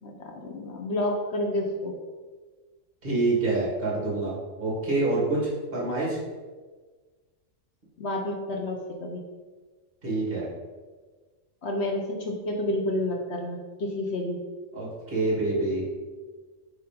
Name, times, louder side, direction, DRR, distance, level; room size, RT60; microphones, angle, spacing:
voice 1, 0.0-1.9 8.0-9.2 11.6-14.4, left 1 dB, 60° left, 1 dB, 1.0 m, -30 dB
voice 2, 3.0-5.4 5.7-6.2 10.0-10.5 14.7-15.8, right 2 dB, 45° right, -5 dB, 2.5 m, -26 dB
8.3 x 3.1 x 5.2 m, 1.4 s
omnidirectional pair, 1.4 m